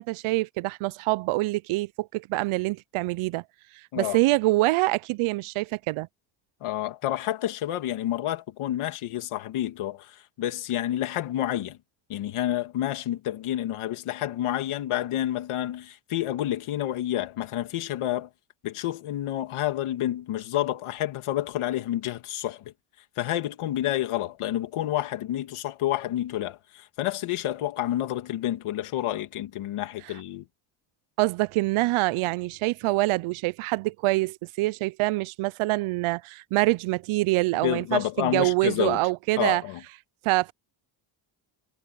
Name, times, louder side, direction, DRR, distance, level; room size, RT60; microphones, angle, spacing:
voice 1, 0.0-3.4 3.7-6.1 31.2-39.6 40.2-40.5, right 20 dB, 75° right, 0.6 m, -25 dB
voice 2, 6.6-11.8 12.1-18.3 18.6-22.7 23.2-30.5 37.6-39.0 39.4-39.8, left 13 dB, 80° left, 2.7 m, -29 dB
cardioid pair, 80°, 49 cm